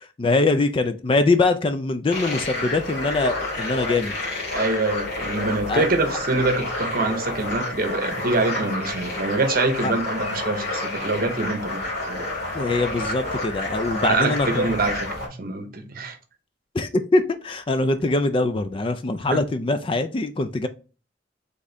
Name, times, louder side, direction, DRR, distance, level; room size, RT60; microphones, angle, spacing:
voice 1, 0.2-4.2 5.7-5.9 9.8-9.9 12.5-14.7 16.7-20.7, left 2 dB, 30° left, 0.4 m, -23 dB
sound 1, 2.1-15.3, left 2 dB, 55° left, 1.8 m, -29 dB
voice 2, 4.5-12.3 14.0-16.2 19.2-19.4, right 3 dB, 50° right, 0.8 m, -25 dB
4.0 x 3.6 x 3.3 m
head